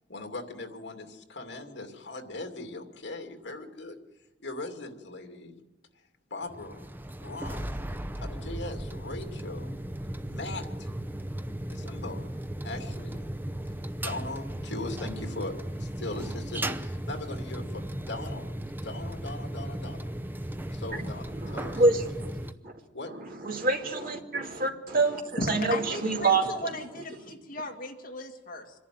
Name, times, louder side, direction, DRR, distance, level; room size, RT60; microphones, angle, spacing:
voice 1, 0.1-4.0 4.4-5.6 6.3-6.8 7.2-7.8 8.2-9.7 10.2-10.9 11.7-12.3 12.6-13.2 14.0-15.5 15.8-18.5 18.8-20.1 20.7-21.8 22.9-23.1 24.0-24.2 25.9-26.0, left 2 dB, 70° left, 2.6 m, -39 dB
sound 1, 6.4-22.5, right 1 dB, 10° right, 0.7 m, -36 dB
voice 2, 21.4-22.3 22.6-22.7 23.1-26.7 27.0-27.1, right 3 dB, 50° right, 2.3 m, -27 dB
voice 3, 25.4-28.7, left 1 dB, 50° left, 2.3 m, -36 dB
25.5 x 11.0 x 9.3 m
head